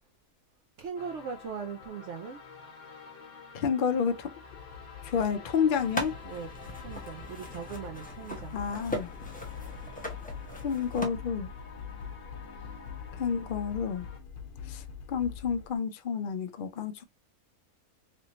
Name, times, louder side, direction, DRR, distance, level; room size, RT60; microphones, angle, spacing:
voice 1, 0.8-2.4 6.2-6.5 6.8-8.6 12.6-12.7, right 6 dB, 65° right, 0.8 m, -39 dB
sound 1, 1.0-14.2, left 4 dB, 45° left, 1.0 m, -49 dB
voice 2, 3.5-4.3 5.0-6.1 8.5-9.1 10.6-11.5 13.2-14.1 14.7-17.0, left 7 dB, 65° left, 0.5 m, -30 dB
sound 2, 4.5-15.8, left 7 dB, 85° left, 1.2 m, -44 dB
sound 3, 5.7-11.1, equal, 10° left, 0.5 m, -40 dB
3.2 x 2.9 x 2.8 m
omnidirectional pair, 1.6 m